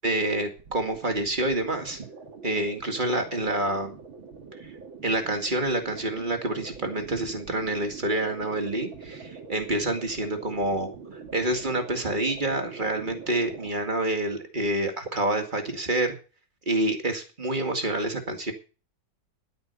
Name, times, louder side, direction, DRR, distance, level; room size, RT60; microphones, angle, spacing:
voice 1, 0.0-2.1 2.4-4.0 4.6-4.7 5.0-16.1 16.7-18.5, right 1 dB, 25° right, 5 dB, 2.1 m, -27 dB
sound 1, 0.6-13.7, right 5 dB, 75° right, 2.8 m, -44 dB
11.0 x 9.5 x 6.7 m, 0.35 s
omnidirectional pair, 2.1 m